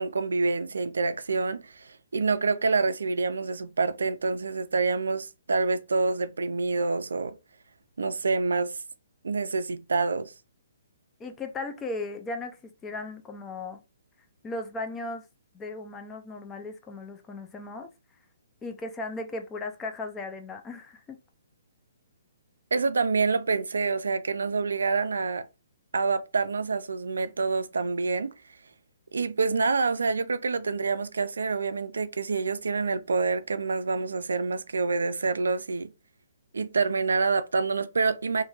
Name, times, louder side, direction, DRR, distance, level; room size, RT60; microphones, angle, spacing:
voice 1, 0.0-7.4 8.0-8.8 9.2-10.3 22.7-25.5 25.9-28.3 29.1-35.9 36.5-38.4, right 4 dB, 85° right, 0.3 m, -27 dB
voice 2, 11.2-13.8 14.4-15.2 15.5-17.9 18.6-21.2, left 2 dB, 15° left, 0.4 m, -36 dB
3.0 x 2.5 x 2.3 m
hypercardioid pair, 150°, 0 cm